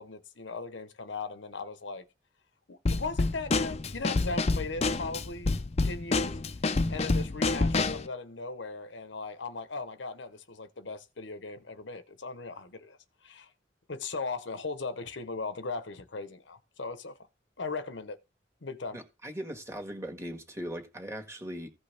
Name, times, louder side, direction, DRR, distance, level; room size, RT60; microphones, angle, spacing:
voice 1, 0.0-2.1 2.7-5.6 5.8-6.4 6.9-13.0 13.2-13.5 13.9-17.2 17.6-18.2 18.6-19.0, left 3 dB, 75° left, 0.9 m, -38 dB
Drum kit / Snare drum, 2.9-8.1, left 3 dB, 35° left, 0.6 m, -28 dB
voice 2, 18.9-21.7, equal, 15° right, 1.7 m, -39 dB
15.5 x 5.3 x 3.4 m
head